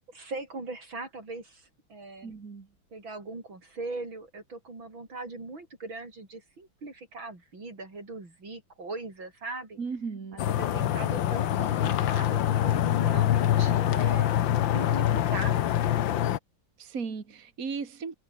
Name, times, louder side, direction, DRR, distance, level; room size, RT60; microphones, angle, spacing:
voice 1, 0.1-2.3 2.9-9.8 10.3-14.3 14.7-15.6, right 3 dB, 90° right, 7.0 m, -40 dB
voice 2, 2.2-2.7 9.8-10.4 16.8-18.2, right 5 dB, 45° right, 2.5 m, -36 dB
sound 1, 10.4-16.4, left 11 dB, 75° left, 1.7 m, -25 dB
omnidirectional pair, 2.1 m